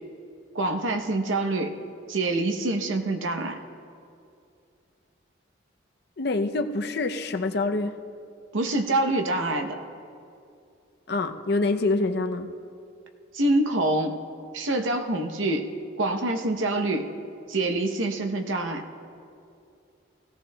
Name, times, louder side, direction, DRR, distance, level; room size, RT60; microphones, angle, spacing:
voice 1, 0.5-1.8 2.1-3.6 8.5-9.8 13.3-14.2 14.5-15.7 16.0-17.1 17.5-18.8, right 2 dB, 85° right, 6 dB, 0.8 m, -26 dB
voice 2, 6.2-8.0 11.1-12.5, left 3 dB, 55° left, 8 dB, 0.5 m, -26 dB
17.5 x 15.0 x 2.2 m, 2.5 s
head